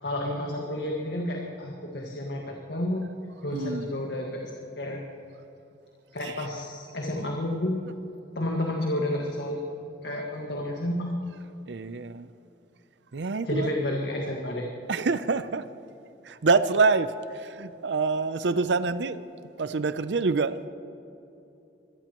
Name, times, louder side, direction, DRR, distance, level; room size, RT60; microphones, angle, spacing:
voice 1, 0.0-3.1 3.4-5.0 6.1-7.9 8.4-9.6 10.0-11.2 13.4-14.7, left 1 dB, 75° left, 1.8 m, -30 dB
voice 2, 3.5-3.9 6.2-6.5 11.7-12.3 13.1-13.7 14.9-15.7 16.2-19.2 19.6-20.7, right 4 dB, 80° right, 0.6 m, -26 dB
25.0 x 18.0 x 3.1 m
head